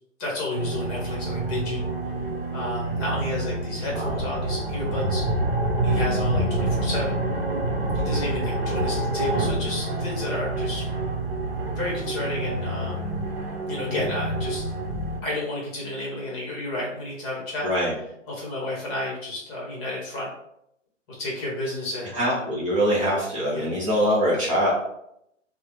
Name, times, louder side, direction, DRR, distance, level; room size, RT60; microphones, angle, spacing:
voice 1, 0.2-1.8 2.5-5.3 5.8-7.2 7.9-10.9 11.7-13.2 13.7-14.6 15.2-17.7 18.3-20.3 21.1-22.5 23.5-23.7, left 2 dB, 20° left, -4 dB, 0.9 m, -31 dB
sound 1, 0.5-15.2, right 2 dB, 50° right, 0.9 m, -27 dB
voice 2, 17.6-17.9 22.1-24.7, equal, 25° right, -5 dB, 0.5 m, -23 dB
3.0 x 2.0 x 3.0 m, 0.77 s
figure-of-eight pair, 130°, 38 cm